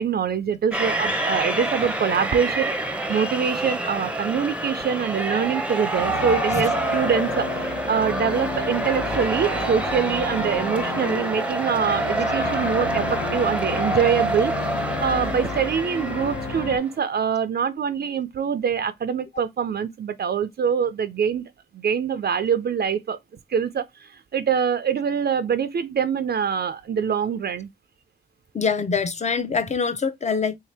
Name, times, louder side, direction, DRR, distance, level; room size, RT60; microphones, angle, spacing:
voice 1, 0.0-2.7 3.1-14.5 15.0-21.4 21.7-23.2 23.5-27.7, right 7 dB, 50° right, 0.5 m, -24 dB
sound 1, 0.7-16.9, right 2 dB, 5° right, 0.7 m, -27 dB
sound 2, 6.0-16.8, left 4 dB, 65° left, 0.8 m, -32 dB
voice 2, 28.5-30.6, left 5 dB, 35° left, 0.6 m, -24 dB
3.2 x 2.8 x 3.3 m
cardioid pair, 70°, 21 cm